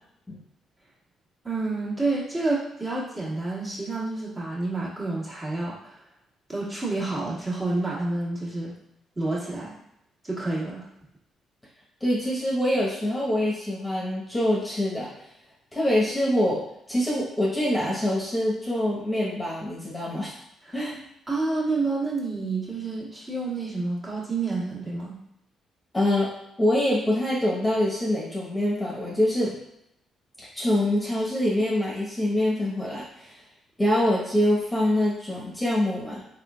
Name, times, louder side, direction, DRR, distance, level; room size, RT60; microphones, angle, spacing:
voice 1, 1.4-6.0 6.5-8.7 9.1-9.7 10.2-10.8 20.7-20.8 21.3-25.1, right 3 dB, 25° right, -7 dB, 1.5 m, -29 dB
voice 2, 12.0-15.1 15.7-16.6 16.9-20.3 20.7-21.0 25.9-26.3 26.6-29.5 30.5-33.3 33.8-36.2, left 1 dB, 15° left, -6 dB, 1.1 m, -25 dB
3.6 x 3.5 x 2.4 m, 0.78 s
cardioid pair, 90°, 0 cm